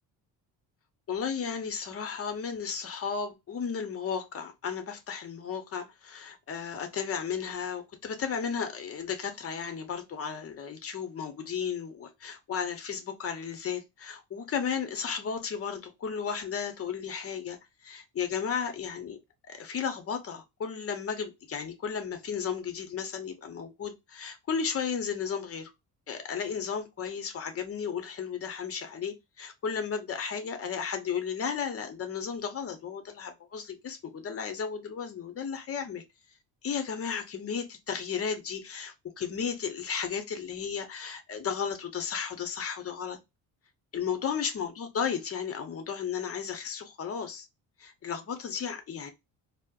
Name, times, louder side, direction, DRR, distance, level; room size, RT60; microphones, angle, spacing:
voice 1, 1.1-19.2 19.5-25.7 26.1-36.0 36.6-43.2 43.9-47.5 47.8-49.1, left 6 dB, 40° left, 0.8 m, -34 dB
4.2 x 2.1 x 2.4 m
cardioid pair, 115°, 37 cm